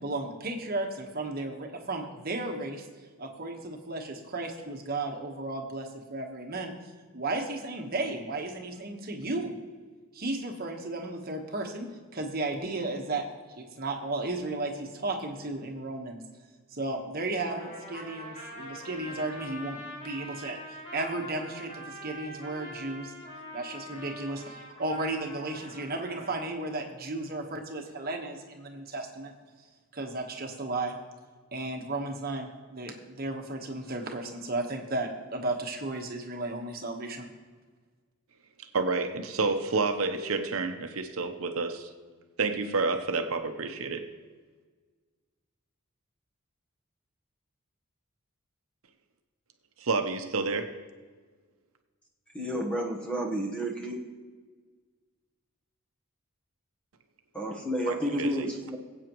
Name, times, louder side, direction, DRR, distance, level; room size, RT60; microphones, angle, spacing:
voice 1, 0.0-2.8 3.2-6.7 7.1-9.5 10.1-13.2 13.6-16.2 16.7-20.6 20.9-23.1 23.5-29.3 29.9-30.9 31.5-37.3, right 2 dB, 45° right, 2 dB, 1.3 m, -34 dB
Trumpet, 17.4-26.4, equal, 35° left, 4.3 m, -44 dB
voice 2, 38.7-41.9 42.4-44.1 49.8-50.8 57.9-58.5, right 3 dB, 80° right, 6 dB, 0.8 m, -29 dB
voice 3, 52.3-54.0 57.3-58.8, equal, 5° left, 0 dB, 1.1 m, -31 dB
22.0 x 8.2 x 3.1 m, 1.4 s
head